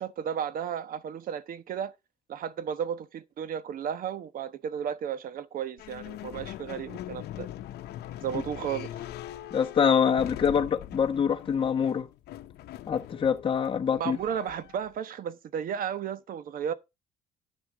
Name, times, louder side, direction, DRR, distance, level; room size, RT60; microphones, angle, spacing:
voice 1, 0.0-1.9 2.3-7.5 8.2-9.0 13.9-16.7, right 8 dB, 55° right, 1.1 m, -34 dB
sound 1, 5.8-14.9, left 13 dB, 70° left, 0.8 m, -42 dB
voice 2, 9.5-12.1 12.9-14.2, left 7 dB, 30° left, 1.2 m, -25 dB
10.0 x 6.3 x 5.0 m
cardioid pair, 110°, 17 cm